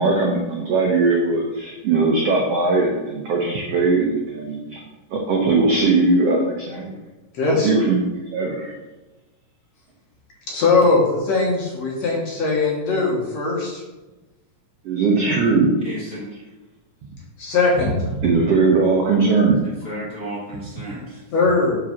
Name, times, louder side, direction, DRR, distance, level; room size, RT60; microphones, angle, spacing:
voice 1, 0.0-4.8 5.1-6.9 7.5-8.7 14.8-15.7 18.2-19.7, right 3 dB, 85° right, 0 dB, 1.3 m, -19 dB
voice 2, 7.3-7.7 10.5-13.8 17.4-18.0 21.3-21.8, left 3 dB, 60° left, -2 dB, 2.0 m, -20 dB
voice 3, 15.8-16.4 19.6-21.2, equal, 45° left, -7 dB, 1.2 m, -33 dB
5.6 x 4.8 x 5.8 m, 1.1 s
omnidirectional pair, 3.9 m